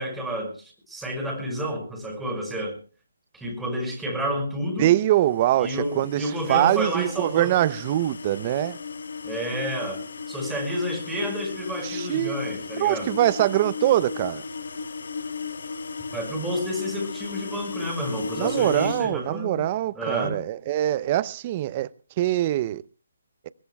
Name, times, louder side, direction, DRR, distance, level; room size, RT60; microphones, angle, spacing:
voice 1, 0.0-2.8 3.3-4.9 5.6-7.5 9.2-13.1 16.1-19.6 19.9-20.4, equal, 5° right, 5.8 m, -30 dB
voice 2, 4.8-8.8 11.8-12.4 12.8-14.4 18.4-21.9 22.2-22.8, right 14 dB, 30° right, 0.6 m, -23 dB
sound 1, 5.2-19.1, left 5 dB, 65° left, 1.2 m, -35 dB
23.0 x 21.5 x 2.3 m
figure-of-eight pair, 150°, 0 cm